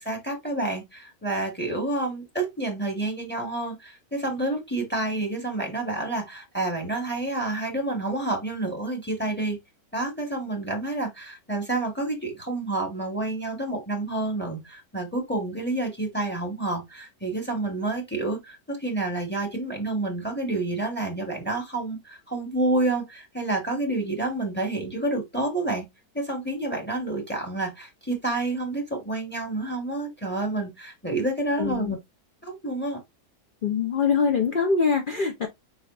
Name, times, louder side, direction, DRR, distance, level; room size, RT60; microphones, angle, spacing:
voice 1, 0.0-9.6 9.9-25.8 26.1-32.0 32.4-33.0, right 2 dB, 5° left, 1.6 m, -29 dB
voice 2, 31.6-32.0 33.6-35.5, left 5 dB, 60° left, 0.5 m, -23 dB
4.8 x 4.3 x 2.4 m
omnidirectional pair, 1.7 m